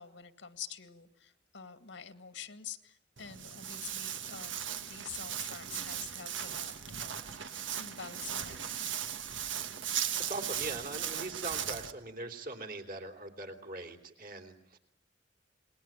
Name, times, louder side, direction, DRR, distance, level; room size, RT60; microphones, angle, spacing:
voice 1, 0.0-8.9, left 7 dB, 70° left, 9 dB, 2.1 m, -47 dB
Walk footsteps, 3.2-11.9, right 9 dB, 70° right, 1.6 m, -37 dB
voice 2, 10.3-14.8, right 2 dB, 45° right, 4 dB, 3.5 m, -41 dB
28.0 x 21.0 x 9.2 m, 0.75 s
head